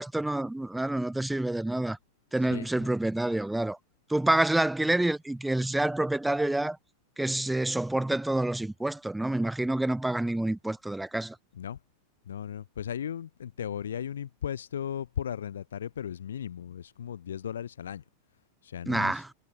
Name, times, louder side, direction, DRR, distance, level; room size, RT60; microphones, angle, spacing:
voice 1, 0.0-2.0 2.3-3.8 4.1-6.8 7.2-11.4 18.9-19.3, right 1 dB, 5° right, 0.6 m, -28 dB
voice 2, 2.5-2.9 4.3-4.4 11.5-11.8 12.3-18.0 18.6-19.2, left 9 dB, 65° left, 1.2 m, -36 dB
figure-of-eight pair, 90°, 0 cm